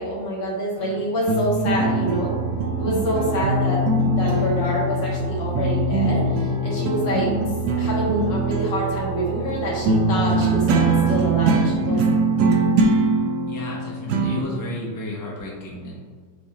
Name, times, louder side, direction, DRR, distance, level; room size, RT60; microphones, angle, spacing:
voice 1, 0.0-2.3 2.8-7.3 7.8-10.8 11.1-12.2, equal, 70° left, -4 dB, 1.8 m, -26 dB
sound 1, 0.8-5.3 5.6-14.4, right 2 dB, 80° right, 1.2 m, -22 dB
sound 2, 1.6-11.7, right 5 dB, 45° right, 0.9 m, -30 dB
voice 2, 13.5-16.0, left 1 dB, 25° left, -4 dB, 0.4 m, -32 dB
7.0 x 2.5 x 2.9 m, 1.6 s
omnidirectional pair, 2.0 m